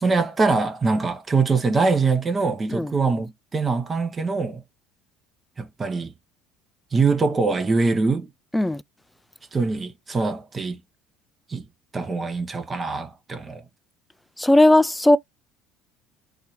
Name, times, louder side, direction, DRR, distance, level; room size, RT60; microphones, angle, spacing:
voice 1, 0.0-4.6 5.6-6.1 6.9-8.3 9.5-10.8 11.5-11.6 11.9-13.6, right 4 dB, 25° right, 1.1 m, -23 dB
voice 2, 14.4-15.2, left 1 dB, 5° left, 0.3 m, -16 dB
4.6 x 2.8 x 3.2 m
figure-of-eight pair, 60°, 0 cm